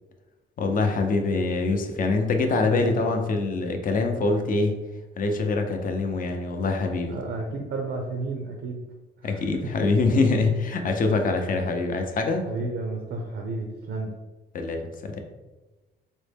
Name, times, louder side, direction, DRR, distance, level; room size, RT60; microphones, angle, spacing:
voice 1, 0.6-4.8 5.2-7.1 9.2-12.5 14.5-15.2, left 3 dB, 45° left, 5 dB, 0.6 m, -24 dB
voice 2, 2.7-3.3 7.1-8.8 9.2-9.7 12.5-14.1, right 3 dB, 65° right, 1 dB, 0.5 m, -32 dB
4.0 x 2.1 x 3.3 m, 1.1 s
cardioid pair, 90°, 20 cm